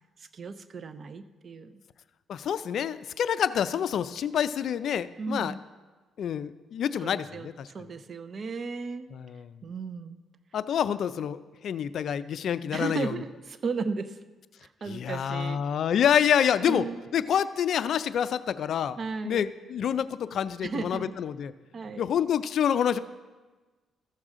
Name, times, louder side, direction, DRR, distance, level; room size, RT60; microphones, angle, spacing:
voice 1, 0.3-1.8 5.2-5.6 7.0-7.5 7.7-9.1 9.6-10.2 12.7-14.2 14.6-15.6 16.7-17.0 19.0-19.4 20.6-21.1 21.7-22.1, right 4 dB, 45° right, 12 dB, 0.6 m, -35 dB
voice 2, 2.3-5.5 6.2-7.7 9.1-9.5 10.5-13.2 14.9-16.8 17.1-19.0 19.2-21.5 22.0-23.0, left 9 dB, 65° left, 14 dB, 0.4 m, -27 dB
14.0 x 6.4 x 3.7 m, 1.3 s
cardioid pair, 90°, 0 cm